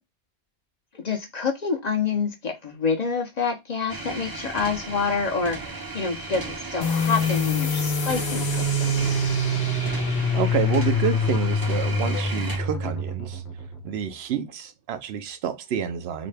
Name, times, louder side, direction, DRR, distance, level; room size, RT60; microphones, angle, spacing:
voice 1, 0.9-9.1, left 5 dB, 45° left, 0.7 m, -27 dB
sound 1, 3.9-12.6, right 3 dB, 30° right, 0.5 m, -36 dB
sound 2, 6.8-14.1, left 2 dB, 85° left, 1.0 m, -25 dB
voice 2, 10.1-13.4 13.8-16.3, right 8 dB, 80° right, 0.8 m, -29 dB
4.0 x 2.2 x 3.2 m
omnidirectional pair, 1.1 m